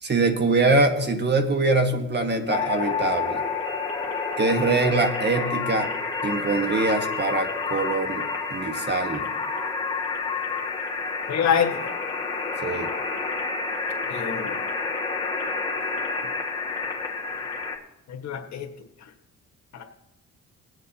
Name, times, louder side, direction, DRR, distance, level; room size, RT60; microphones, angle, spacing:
voice 1, 0.0-3.4 4.4-5.9 6.2-9.3 12.6-12.9, right 3 dB, 35° right, 7 dB, 1.3 m, -23 dB
sound 1, 2.5-17.8, left 4 dB, 15° left, 1.8 m, -29 dB
voice 2, 11.3-11.9 14.1-14.6 18.1-18.7 19.7-19.8, left 7 dB, 65° left, 2 dB, 1.5 m, -26 dB
22.0 x 7.9 x 2.8 m, 0.90 s
cardioid pair, 90°, 30 cm